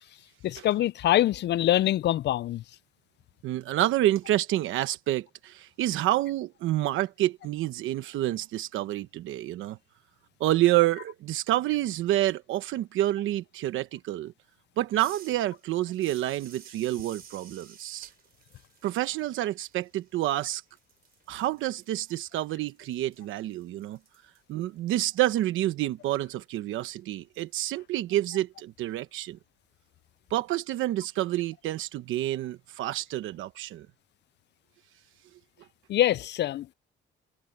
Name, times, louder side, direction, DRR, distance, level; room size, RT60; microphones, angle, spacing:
voice 1, 0.4-2.6 35.9-36.7, left 13 dB, 60° left, 0.4 m, -24 dB
voice 2, 3.4-9.8 10.4-14.3 14.8-18.1 18.8-20.6 21.3-24.0 24.5-29.4 30.3-33.9, right 14 dB, 90° right, 1.0 m, -28 dB
sound 1, 15.0-20.5 20.8-25.6, right 7 dB, 50° right, 3.6 m, -53 dB
cardioid pair, 90°, 20 cm